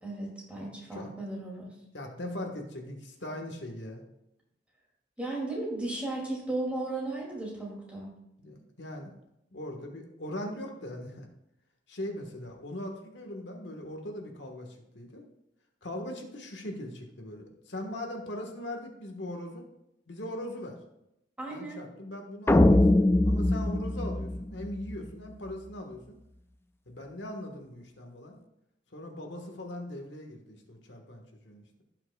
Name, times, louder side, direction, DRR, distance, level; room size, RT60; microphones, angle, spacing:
voice 1, 0.0-1.7 5.2-8.1 21.4-21.8, right 2 dB, 5° right, -3 dB, 2.4 m, -35 dB
voice 2, 1.9-4.0 8.4-9.1 9.5-11.3 11.9-15.2 15.8-19.6 20.1-20.8 21.5-26.2 26.9-28.4 28.9-31.8, left 1 dB, 70° left, 2 dB, 1.4 m, -40 dB
sound 1, 22.5-24.9, left 1 dB, 15° left, 0.3 m, -22 dB
16.0 x 5.8 x 2.3 m, 0.84 s
head